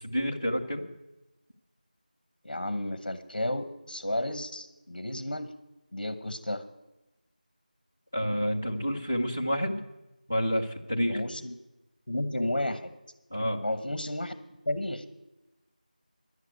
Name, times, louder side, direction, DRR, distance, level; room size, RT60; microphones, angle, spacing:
voice 1, 0.0-0.8 8.1-9.8 10.3-11.2 13.3-13.6, equal, 10° left, -3 dB, 0.4 m, -29 dB
voice 2, 2.4-5.5 5.9-6.6 11.1-11.6 12.1-12.9 13.6-14.3 14.7-15.1, left 1 dB, 60° left, 10 dB, 1.0 m, -32 dB
10.5 x 8.0 x 9.3 m, 0.98 s
figure-of-eight pair, 180°, 5 cm